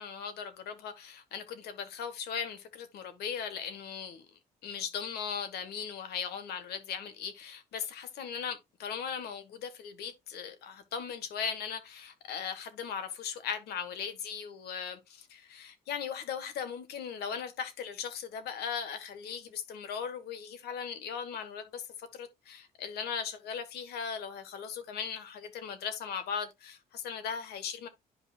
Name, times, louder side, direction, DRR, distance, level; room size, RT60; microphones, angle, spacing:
voice 1, 0.0-4.3 4.6-27.9, left 7 dB, 70° left, 1.5 m, -38 dB
11.0 x 5.0 x 2.4 m
cardioid pair, 110°, 17 cm